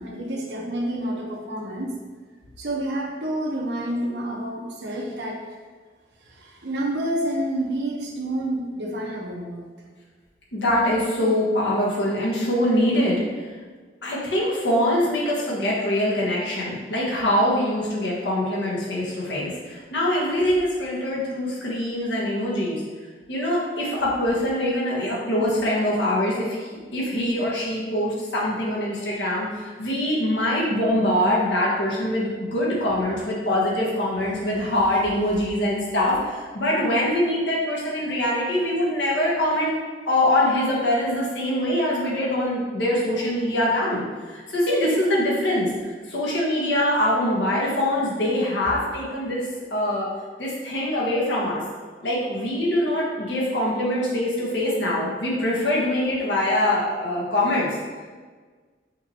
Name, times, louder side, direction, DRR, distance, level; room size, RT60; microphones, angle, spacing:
voice 1, 0.0-1.9 2.6-5.4 6.3-9.9, right 1 dB, 80° right, -1 dB, 0.8 m, -29 dB
voice 2, 10.5-13.2 14.0-22.8 23.3-39.7 40.1-50.1 50.4-51.6 52.0-57.8, left 1 dB, 90° left, -5 dB, 1.3 m, -23 dB
5.7 x 3.1 x 2.8 m, 1.5 s
head